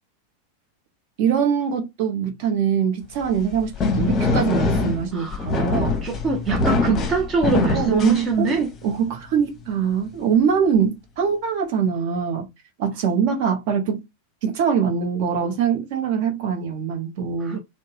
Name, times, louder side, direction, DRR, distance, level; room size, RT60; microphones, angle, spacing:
voice 1, 1.2-6.0 7.7-12.5 12.8-14.1 14.4-17.6, right 7 dB, 50° right, 0.9 m, -23 dB
sound 1, 3.2-8.8, left 3 dB, 25° left, 0.8 m, -23 dB
voice 2, 5.1-5.5 6.0-8.7 17.4-17.6, right 4 dB, 25° right, 0.6 m, -23 dB
2.7 x 2.1 x 3.2 m
figure-of-eight pair, 90°, 0 cm